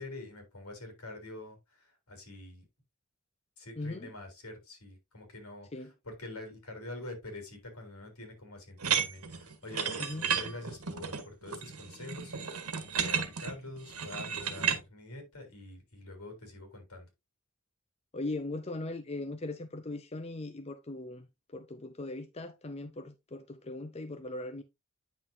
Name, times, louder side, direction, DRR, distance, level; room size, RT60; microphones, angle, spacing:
voice 1, 0.0-1.6 2.1-2.6 3.6-17.1, left 2 dB, 75° left, 3.7 m, -46 dB
voice 2, 3.8-4.1 5.7-5.9 10.0-10.3 18.1-21.3 21.5-24.6, left 2 dB, 30° left, 0.5 m, -39 dB
sound 1, 8.8-14.8, right 7 dB, 85° right, 1.5 m, -33 dB
9.3 x 6.0 x 2.7 m
head